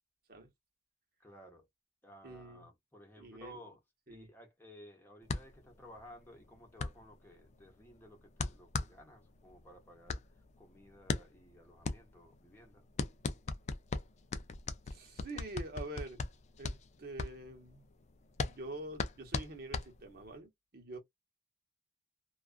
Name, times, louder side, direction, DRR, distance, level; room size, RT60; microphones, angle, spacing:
voice 1, 1.2-1.7 2.0-3.8 4.1-10.2 10.6-12.8, equal, 10° left, 0.8 m, -56 dB
voice 2, 2.2-2.7 3.2-3.6 4.1-4.3 14.9-16.2 16.6-17.9 18.4-21.0, right 2 dB, 55° right, 1.0 m, -46 dB
sound 1, 5.3-20.4, left 4 dB, 40° left, 0.3 m, -39 dB
2.4 x 2.3 x 2.4 m
head